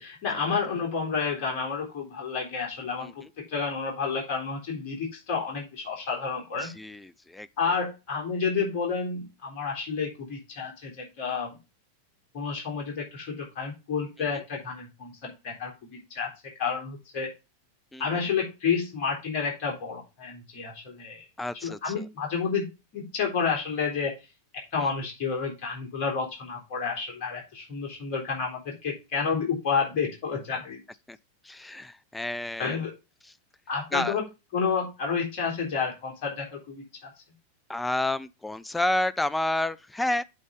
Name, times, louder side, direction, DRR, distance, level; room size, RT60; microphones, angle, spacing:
voice 1, 0.0-3.2 3.5-6.7 7.6-11.6 12.3-16.3 16.6-17.3 18.0-21.2 21.6-24.1 24.7-30.8 32.6-32.9 33.7-34.2 34.5-36.8, left 5 dB, 45° left, 3.6 m, -30 dB
voice 2, 6.6-7.5 17.9-18.0 21.4-22.0 24.8-24.9 31.1-31.2 31.4-32.8 33.9-34.2 37.7-40.2, left 1 dB, 5° left, 0.4 m, -30 dB
8.3 x 4.0 x 5.1 m
figure-of-eight pair, 90°, 0 cm